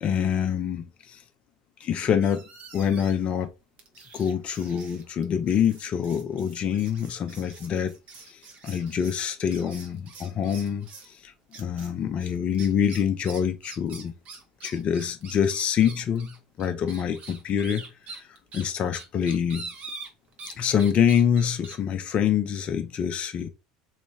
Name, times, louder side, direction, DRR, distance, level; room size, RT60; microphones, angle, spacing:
voice 1, 0.0-1.2 1.8-2.4 2.7-3.5 4.1-7.9 8.3-10.9 11.2-11.3 11.6-14.1 14.6-17.9 18.5-19.7 20.6-23.5, left 8 dB, 35° left, 0.5 m, -25 dB
sound 1, 2.2-3.3 3.8-11.1 11.5-11.9 12.2-20.5 20.8-21.8, right 4 dB, 40° right, 1.0 m, -45 dB
3.2 x 3.1 x 3.3 m
figure-of-eight pair, 75°, 3 cm